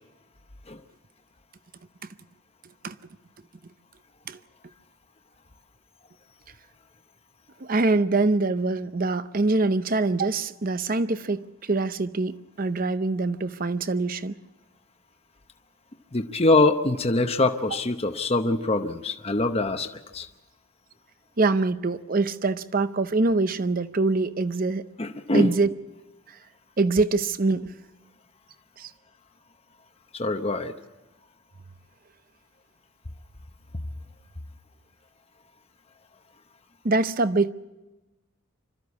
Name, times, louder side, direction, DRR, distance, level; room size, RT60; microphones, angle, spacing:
voice 1, 7.6-14.3 21.4-24.8 25.3-25.7 26.8-27.7 28.8-28.9 36.8-37.5, right 3 dB, 40° right, 0.7 m, -24 dB
voice 2, 16.1-20.3 25.0-25.5 30.1-30.7, left 2 dB, 30° left, 0.8 m, -24 dB
26.0 x 13.5 x 8.4 m
head